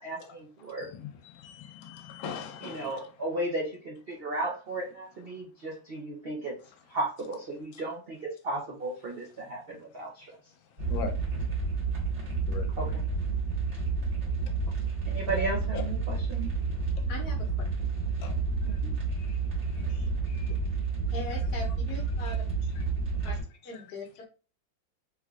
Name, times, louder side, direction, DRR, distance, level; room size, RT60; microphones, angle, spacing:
voice 1, 0.0-0.9 2.6-6.5 6.9-10.3 12.8-13.0 15.1-16.5 18.7-18.9, right 2 dB, 75° right, 0.5 m, -35 dB
voice 2, 0.6-3.1 4.1-4.2 7.7-7.8 10.0-10.1 10.6-11.2 12.5-12.7 14.4-14.6 15.7-15.8 18.2-18.8 19.1-19.4 19.7-20.6 21.3-21.4 22.2-22.8 23.2-23.3 23.7-23.8, left 5 dB, 90° left, 1.4 m, -43 dB
sound 1, 10.8-23.4, right 4 dB, 40° right, 1.5 m, -30 dB
voice 3, 17.1-17.5 21.1-22.3 23.2-23.4 23.6-24.3, left 2 dB, 60° left, 1.3 m, -40 dB
3.5 x 3.2 x 2.4 m
omnidirectional pair, 2.1 m